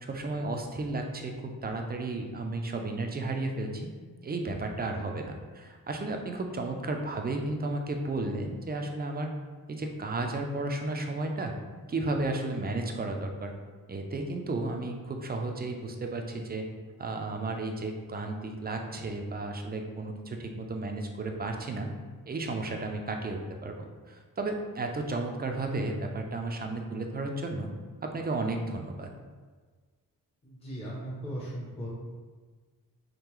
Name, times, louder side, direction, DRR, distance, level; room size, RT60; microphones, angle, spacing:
voice 1, 0.0-3.9 4.2-9.3 9.7-11.5 11.9-13.5 13.9-16.6 17.0-21.9 22.3-27.7 28.0-29.1, right 2 dB, 25° right, 3 dB, 0.4 m, -33 dB
voice 2, 30.4-31.9, right 1 dB, 15° left, -6 dB, 0.7 m, -38 dB
3.7 x 3.2 x 3.0 m, 1.4 s
wide cardioid pair, 125°, 36 cm